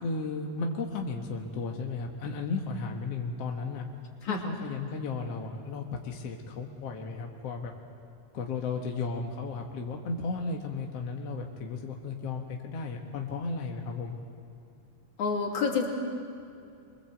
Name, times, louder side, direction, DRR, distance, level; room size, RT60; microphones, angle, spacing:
voice 1, 0.0-3.9 4.2-7.7 8.3-14.2, left 4 dB, 60° left, 1 dB, 2.3 m, -34 dB
voice 2, 15.2-15.9, left 5 dB, 75° left, 0 dB, 4.2 m, -28 dB
24.0 x 24.0 x 7.9 m, 2.5 s
omnidirectional pair, 3.3 m